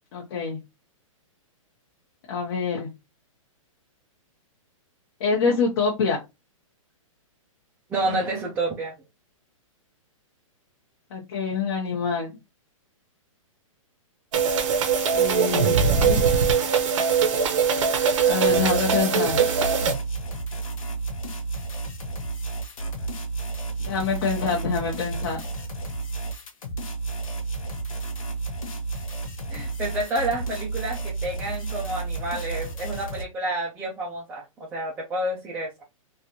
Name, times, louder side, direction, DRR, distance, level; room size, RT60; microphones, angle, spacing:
voice 1, 0.1-0.6 2.3-2.9 5.2-6.2 11.1-12.3 15.1-16.4 18.3-19.4 23.8-25.4, left 5 dB, 40° left, -2 dB, 0.9 m, -26 dB
voice 2, 7.9-9.0 29.5-35.8, right 1 dB, 10° right, -4 dB, 0.5 m, -29 dB
sound 1, 14.3-19.9, right 6 dB, 65° right, 0.8 m, -21 dB
sound 2, 18.5-33.2, right 3 dB, 75° left, 1.0 m, -32 dB
3.3 x 2.6 x 2.8 m, 0.23 s
hypercardioid pair, 160°, 18 cm